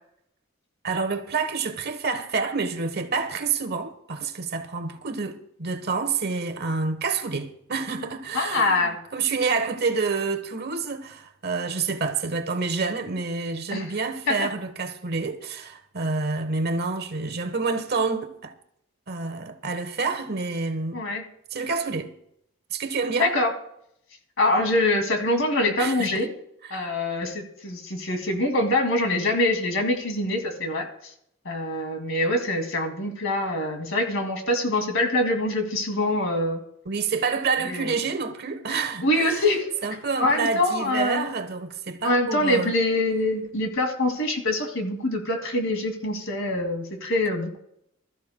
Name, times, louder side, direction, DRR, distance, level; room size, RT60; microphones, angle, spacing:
voice 1, 0.8-18.5 19.1-21.0 21.5-22.1 22.7-23.3 25.8-26.3 26.7-26.9 36.8-39.5 39.8-42.7, right 4 dB, 50° right, 1.1 m, -28 dB
voice 2, 8.3-9.0 13.7-13.9 14.3-14.5 20.9-21.2 23.2-23.5 24.4-26.3 26.7-30.9 31.4-36.6 37.7-37.9 39.0-39.7 40.2-41.2 42.0-47.6, left 1 dB, 65° left, 2.4 m, -24 dB
21.5 x 13.5 x 2.2 m
head